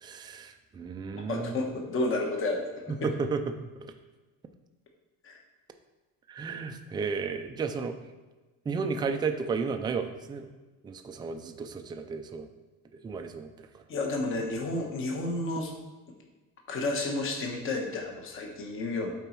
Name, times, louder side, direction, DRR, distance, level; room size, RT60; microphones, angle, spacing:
voice 1, 0.0-1.6 3.0-3.4 3.8-3.9 6.3-8.0 8.7-10.5 10.8-12.5 13.0-13.5, right 5 dB, 15° right, 6 dB, 0.3 m, -33 dB
voice 2, 1.1-2.6 3.0-3.1 5.2-5.4 13.9-15.7 16.7-19.2, left 2 dB, 40° left, 1 dB, 1.2 m, -31 dB
8.9 x 4.1 x 4.5 m, 1.2 s
cardioid pair, 170°, 33 cm